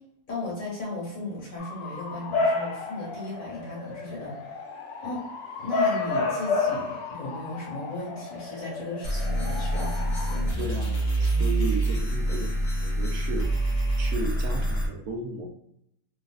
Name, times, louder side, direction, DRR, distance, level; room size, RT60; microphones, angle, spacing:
voice 1, 0.3-4.6 5.0-5.2 5.6-10.6, left 2 dB, 60° left, -5 dB, 1.9 m, -36 dB
Bark / Motor vehicle (road) / Siren, 1.6-10.3, left 3 dB, 80° left, 1.2 m, -31 dB
sound 1, 9.0-14.9, right 1 dB, 40° left, 0.8 m, -26 dB
voice 2, 10.6-13.5 14.0-15.5, right 3 dB, 75° right, 2 dB, 1.0 m, -34 dB
3.3 x 2.8 x 2.4 m, 0.75 s
omnidirectional pair, 1.6 m